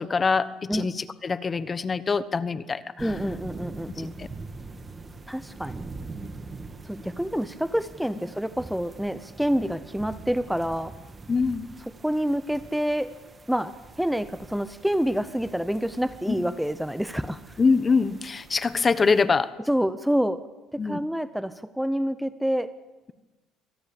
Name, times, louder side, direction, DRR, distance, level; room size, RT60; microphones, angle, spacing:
voice 1, 0.0-3.1 4.0-4.3 11.3-11.7 16.3-16.4 17.6-19.5 20.8-21.0, left 4 dB, 25° left, 15 dB, 1.1 m, -24 dB
voice 2, 3.0-4.1 5.3-5.8 6.9-10.9 12.0-13.1 13.5-17.4 19.7-20.4 20.7-22.7, equal, ahead, 13 dB, 0.8 m, -27 dB
sound 1, 3.0-19.2, right 3 dB, 20° right, 2.1 m, -43 dB
24.5 x 17.5 x 8.7 m, 1.2 s
cardioid pair, 115°, 0 cm